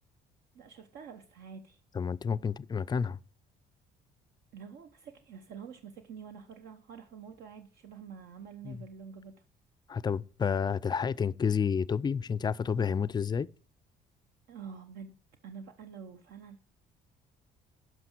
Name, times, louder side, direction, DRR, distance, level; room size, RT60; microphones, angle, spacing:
voice 1, 0.5-1.8 4.5-9.4 14.5-15.1 15.4-16.7, right 6 dB, 75° right, 0.9 m, -47 dB
voice 2, 1.9-3.2 8.6-8.8 9.9-13.5, left 6 dB, 25° left, 0.4 m, -30 dB
11.0 x 5.8 x 4.4 m
cardioid pair, 110°, 17 cm